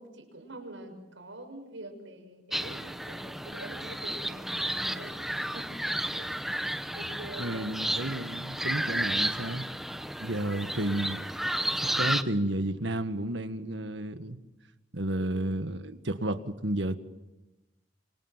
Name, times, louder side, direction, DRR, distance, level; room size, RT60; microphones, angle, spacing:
voice 1, 0.0-5.2 5.5-5.9 6.1-6.3 6.9-8.1 15.2-15.7, right 1 dB, 85° right, 6.6 m, -45 dB
sound 1, 2.5-12.2, right 1 dB, ahead, 0.9 m, -32 dB
voice 2, 7.4-9.7 10.2-11.2 11.8-14.4 14.9-17.0, right 1 dB, 70° right, 1.7 m, -32 dB
27.5 x 25.0 x 7.4 m
head